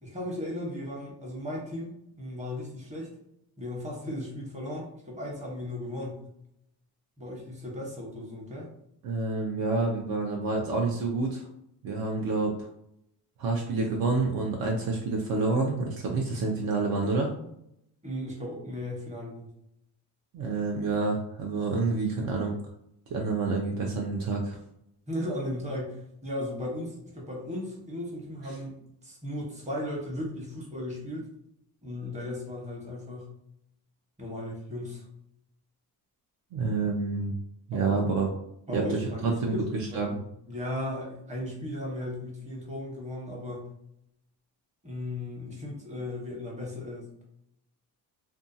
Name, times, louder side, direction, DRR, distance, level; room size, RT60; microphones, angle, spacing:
voice 1, 0.0-1.9 2.2-3.1 3.6-6.2 7.2-8.7 18.0-19.5 25.1-31.3 31.8-33.3 34.2-35.0 37.7-38.0 38.7-40.2 40.5-43.7 44.8-47.2, left 1 dB, 15° right, -3 dB, 1.0 m, -36 dB
voice 2, 9.0-11.4 11.8-12.6 13.4-17.3 20.3-22.6 23.1-24.6 36.5-37.4 37.7-38.3 38.7-39.6 39.9-40.2, right 3 dB, 60° right, 0 dB, 0.6 m, -28 dB
2.6 x 2.3 x 2.6 m, 0.76 s
cardioid pair, 105°, 39 cm